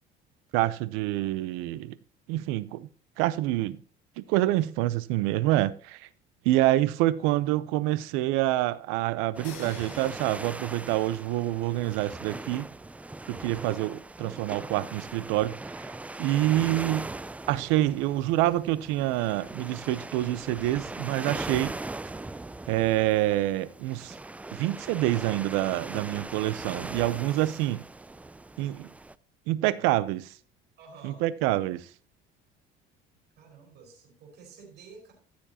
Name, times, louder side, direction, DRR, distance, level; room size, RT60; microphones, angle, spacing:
voice 1, 0.5-2.0 2.3-2.9 3.2-3.8 4.3-6.1 6.4-12.7 13.3-15.6 16.2-17.1 17.5-21.7 22.7-24.2 24.5-27.8 28.6-28.9 29.5-30.3 31.0-31.9, right 15 dB, 90° right, 0.7 m, -27 dB
voice 2, 4.3-4.6 30.8-31.2 33.4-35.1, right 5 dB, 55° right, 4.7 m, -51 dB
sound 1, 9.3-29.1, right 2 dB, 5° right, 0.3 m, -40 dB
sound 2, 9.4-11.6, left 10 dB, 80° left, 1.8 m, -50 dB
14.5 x 7.2 x 2.9 m
cardioid pair, 115°, 20 cm